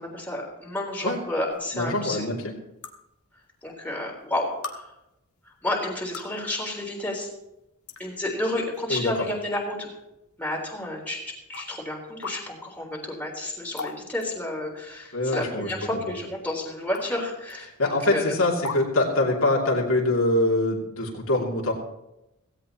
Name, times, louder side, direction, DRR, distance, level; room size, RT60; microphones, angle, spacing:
voice 1, 0.0-2.3 3.6-4.9 5.6-7.3 8.0-9.9 10.4-18.4, left 1 dB, 10° left, -2 dB, 3.7 m, -31 dB
sound 1, 1.5-1.6 2.8-2.9 3.9-4.0 4.6-4.8 5.9-6.4 7.3-7.4 7.9-8.0 8.7-9.0 9.5-9.6 10.6-10.7 11.5-11.7 12.2-12.4 13.8-14.0 14.2-14.3 15.3-15.7 16.9-17.1 17.5-17.6 18.6-18.8, left 4 dB, 85° left, 1.6 m, -35 dB
voice 2, 1.7-2.5 8.9-9.1 15.1-15.7 17.8-21.7, left 2 dB, 65° left, -1 dB, 2.6 m, -24 dB
17.0 x 16.5 x 3.0 m, 0.89 s
head